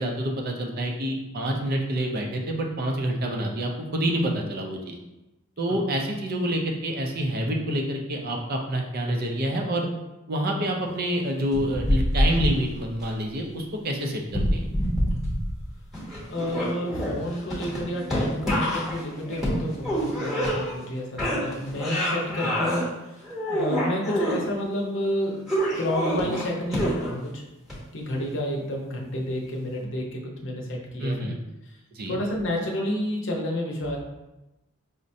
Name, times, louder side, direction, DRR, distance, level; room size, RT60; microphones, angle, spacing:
voice 1, 0.0-5.0 5.6-9.9 10.3-14.7 22.4-22.5 31.0-31.4 31.9-32.2, right 1 dB, 45° right, 1 dB, 0.5 m, -27 dB
sound 1, 11.5-13.0 14.3-15.7 15.9-20.9 21.2-22.8 23.2-24.4 25.5-27.2 27.7-27.8, equal, ahead, 0.9 m, -26 dB
voice 2, 16.3-22.9 23.5-25.4 25.8-27.4 27.9-31.3 31.7-31.8 32.1-34.0, left 1 dB, 60° left, -1 dB, 0.7 m, -30 dB
4.9 x 2.1 x 2.6 m, 0.99 s
head